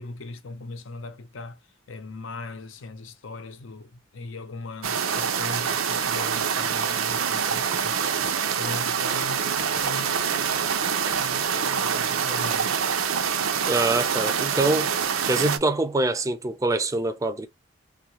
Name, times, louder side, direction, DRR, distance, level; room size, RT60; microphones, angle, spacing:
voice 1, 0.0-1.6 1.9-8.0 8.4-12.8, left 3 dB, 70° left, 0.6 m, -39 dB
sound 1, 4.8-15.6, right 7 dB, 85° right, 0.5 m, -25 dB
voice 2, 13.7-14.9 15.3-17.5, right 2 dB, 15° right, 0.4 m, -24 dB
3.6 x 2.4 x 2.8 m
head